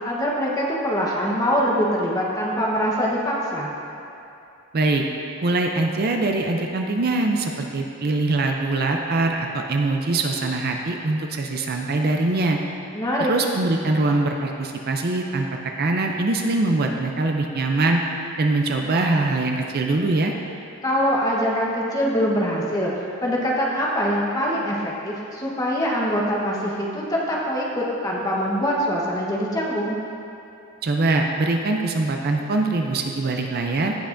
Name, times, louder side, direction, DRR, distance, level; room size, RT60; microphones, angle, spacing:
voice 1, 0.0-3.7 12.9-13.3 20.8-30.0, equal, 15° left, -4 dB, 1.1 m, -23 dB
voice 2, 4.7-5.0 5.4-12.6 13.2-15.5 15.8-18.0 18.4-20.3 30.8-33.9, right 2 dB, 45° right, 2 dB, 0.5 m, -23 dB
16.0 x 5.7 x 2.6 m, 2.7 s
head